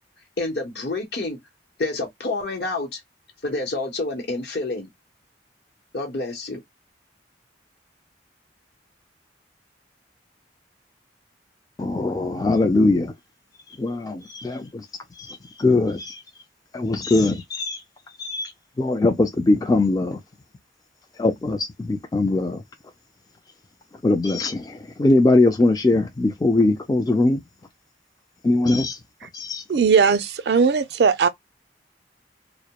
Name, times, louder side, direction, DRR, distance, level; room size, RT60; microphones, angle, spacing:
voice 1, 0.4-1.4 1.8-3.0 3.4-4.9 5.9-6.6, left 2 dB, 65° left, 0.8 m, -28 dB
voice 2, 11.8-13.1 13.8-14.9 15.1-16.2 16.7-17.8 18.2-18.5 18.8-20.2 21.2-22.6 24.0-27.4 28.4-29.0 29.3-29.6, left 2 dB, 20° left, 0.3 m, -21 dB
voice 3, 29.7-31.3, right 5 dB, 60° right, 0.4 m, -18 dB
2.2 x 2.0 x 2.7 m
head